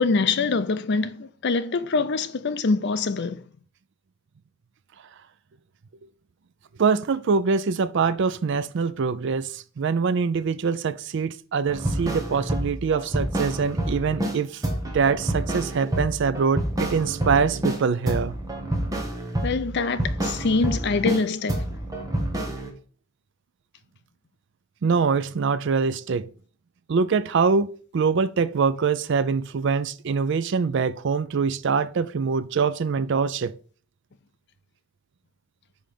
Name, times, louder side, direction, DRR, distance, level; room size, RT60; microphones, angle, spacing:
voice 1, 0.0-3.4 19.4-21.7, left 4 dB, 55° left, 0.5 m, -24 dB
voice 2, 6.8-14.6 14.9-18.4 24.8-26.3 26.9-33.5, right 5 dB, 60° right, 0.4 m, -24 dB
sound 1, 11.7-14.4 14.6-17.8 18.1-21.2 21.5-22.7, right 1 dB, 15° right, 1.3 m, -28 dB
5.1 x 5.1 x 5.8 m
head